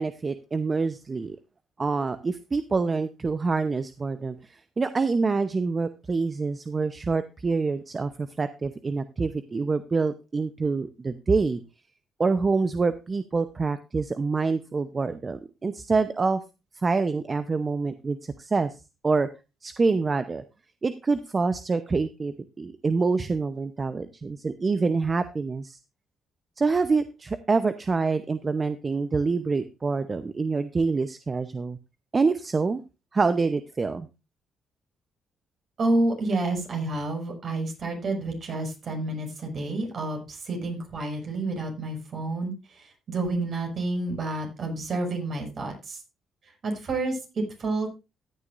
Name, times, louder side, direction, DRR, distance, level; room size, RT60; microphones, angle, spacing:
voice 1, 0.0-1.4 1.8-11.6 12.2-16.4 16.8-18.7 19.0-19.3 19.6-20.4 20.8-25.8 26.6-31.8 32.1-32.8 33.1-34.1, right 4 dB, 30° right, 11 dB, 0.8 m, -26 dB
voice 2, 35.8-46.0 46.6-48.1, right 2 dB, 55° right, 3 dB, 5.7 m, -29 dB
14.5 x 9.8 x 2.6 m, 0.28 s
cardioid pair, 90°, 0 cm